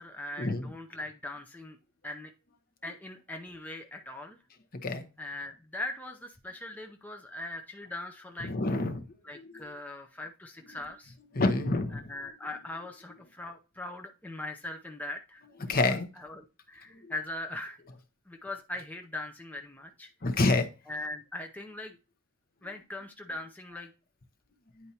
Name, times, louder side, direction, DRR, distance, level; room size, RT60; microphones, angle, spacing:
voice 1, 0.0-1.8 2.0-2.3 2.8-4.4 5.2-8.5 9.2-11.2 11.9-17.8 18.3-20.1 20.9-21.9 22.6-23.9, left 2 dB, 10° left, 3 dB, 0.6 m, -40 dB
voice 2, 8.4-9.0 11.4-12.0 15.7-16.1 20.2-20.7, left 2 dB, 45° left, 7 dB, 0.8 m, -27 dB
9.6 x 4.4 x 2.9 m, 0.31 s
head